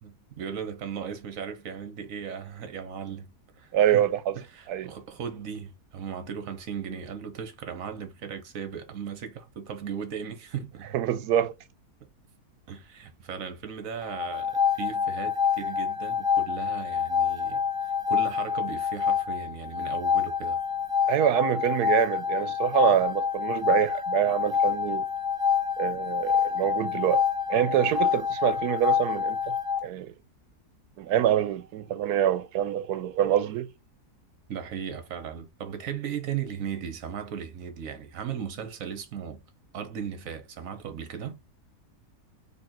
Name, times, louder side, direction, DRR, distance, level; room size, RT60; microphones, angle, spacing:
voice 1, 0.0-4.1 4.4-10.9 12.7-17.6 18.1-20.6 26.6-26.7 34.5-39.4 39.7-41.4, right 7 dB, 65° right, 1.3 m, -37 dB
voice 2, 3.7-4.4 4.7-4.9 10.9-11.6 21.1-25.0 25.8-27.2 27.5-29.6 29.8-30.1 31.0-33.7, right 11 dB, 85° right, 1.1 m, -25 dB
sound 1, 14.0-29.8, left 7 dB, 30° left, 0.4 m, -27 dB
4.2 x 2.8 x 4.2 m
omnidirectional pair, 1.6 m